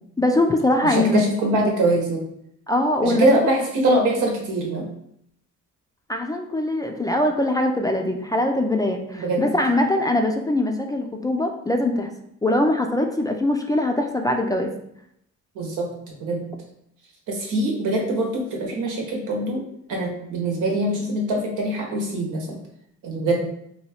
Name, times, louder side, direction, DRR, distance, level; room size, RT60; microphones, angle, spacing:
voice 1, 0.2-1.2 2.7-3.4 6.1-12.1 12.4-14.7, left 1 dB, 15° left, 3 dB, 0.3 m, -22 dB
voice 2, 0.8-2.2 3.0-4.9 9.1-9.5 15.5-15.9 16.2-16.4 17.3-19.6 19.9-22.5 23.0-23.5, right 1 dB, 85° right, 0 dB, 1.1 m, -23 dB
2.9 x 2.3 x 4.2 m, 0.73 s
cardioid pair, 90°, 30 cm